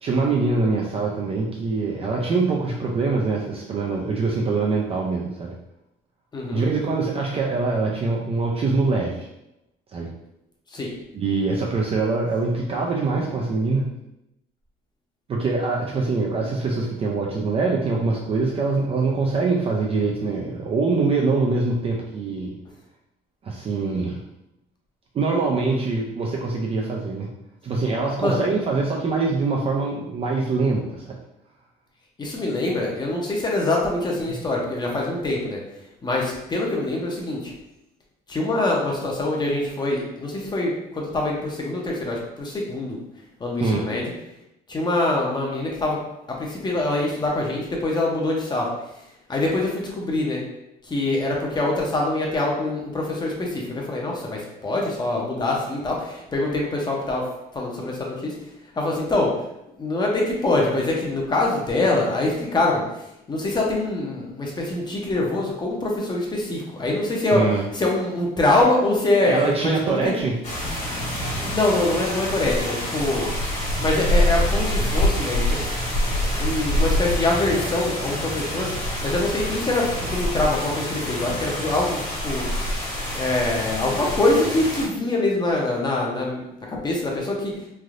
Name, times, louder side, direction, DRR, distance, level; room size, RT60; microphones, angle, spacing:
voice 1, 0.0-5.5 6.5-9.3 9.9-10.1 11.1-13.9 15.3-22.5 23.4-24.2 25.1-27.3 27.6-31.2 43.6-43.9 67.3-67.6 69.2-70.3, right 3 dB, 35° right, -1 dB, 0.4 m, -24 dB
voice 2, 6.3-6.6 10.7-10.9 28.2-28.4 32.2-35.6 36.0-37.5 38.3-43.0 43.4-44.0 44.7-46.0 46.3-48.7 49.3-50.4 50.9-57.3 57.5-58.3 58.8-59.3 59.8-62.8 63.3-67.5 67.7-70.1 71.4-73.3 73.8-75.7 76.4-78.7 79.0-82.4 83.1-86.4 86.7-87.6, left 2 dB, 25° left, -2 dB, 0.7 m, -24 dB
sound 1, 70.4-84.9, left 1 dB, 45° left, 1.4 m, -26 dB
3.2 x 2.6 x 2.5 m, 0.86 s
cardioid pair, 110°, 17 cm